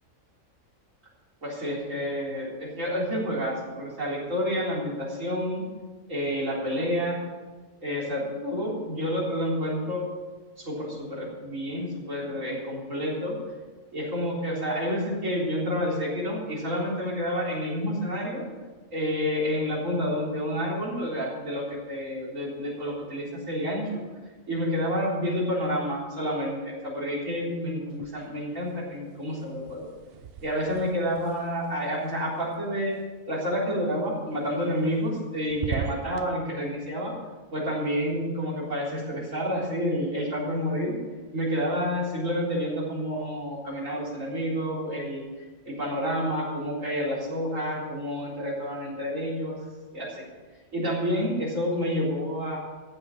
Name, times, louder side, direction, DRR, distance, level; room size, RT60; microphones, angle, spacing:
voice 1, 1.4-5.6 6.1-7.2 7.8-10.0 10.6-13.3 13.9-18.4 18.9-24.0 24.5-29.9 30.4-32.9 33.3-37.1 37.5-40.9 41.3-49.6 49.9-50.2 50.7-52.6, equal, 75° right, -5 dB, 4.3 m, -29 dB
sound 1, 27.9-28.6 28.9-33.0 34.6-35.2 35.5-36.3, right 7 dB, 55° right, 0.8 m, -39 dB
15.0 x 8.1 x 7.0 m, 1.3 s
omnidirectional pair, 1.4 m